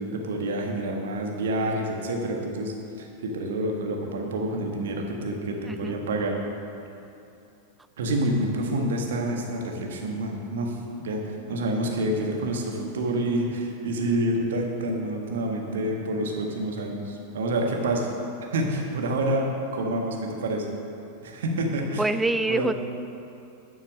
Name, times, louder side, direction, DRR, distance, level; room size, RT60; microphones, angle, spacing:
voice 1, 0.0-6.3 8.0-18.1 18.5-19.4 19.7-20.7 21.2-22.0 22.5-22.7, right 1 dB, 60° right, 1 dB, 1.5 m, -28 dB
voice 2, 22.0-22.7, right 2 dB, 10° right, 12 dB, 0.4 m, -25 dB
11.5 x 6.5 x 6.5 m, 2.8 s
figure-of-eight pair, 90°, 0 cm